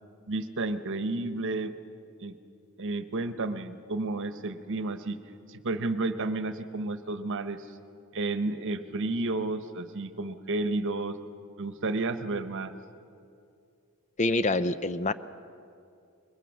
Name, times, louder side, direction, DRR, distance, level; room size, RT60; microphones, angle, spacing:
voice 1, 0.3-1.7 2.2-2.3 2.8-5.2 5.5-7.6 8.1-11.2 11.6-12.7, right 2 dB, 60° right, 11 dB, 1.0 m, -31 dB
voice 2, 14.2-15.1, left 2 dB, 30° left, 13 dB, 0.5 m, -26 dB
22.5 x 21.5 x 6.3 m, 2.5 s
head